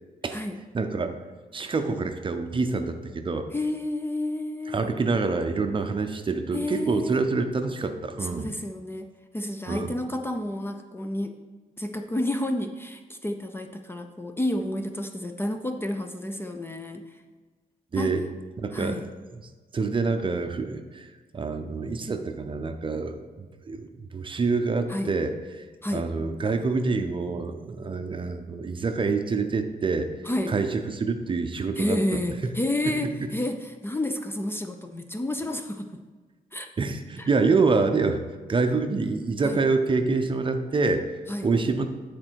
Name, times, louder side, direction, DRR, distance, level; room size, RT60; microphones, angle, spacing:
voice 1, 0.7-1.1 1.5-3.5 4.7-8.5 9.7-9.9 17.9-18.2 18.6-19.1 19.7-25.7 25.9-30.1 30.5-32.0 36.8-38.2 38.5-41.9, right 4 dB, 35° right, 7 dB, 0.6 m, -26 dB
voice 2, 3.5-5.0 6.5-7.2 8.2-9.1 9.3-11.4 11.8-17.2 17.9-18.2 18.7-19.1 24.9-25.2 25.8-26.1 30.2-30.6 31.8-36.0 36.5-36.7 37.2-37.3 39.4-39.6 41.3-41.5, left 1 dB, 15° left, 6 dB, 0.5 m, -30 dB
10.0 x 4.3 x 4.6 m, 1.4 s
wide cardioid pair, 125°, 15 cm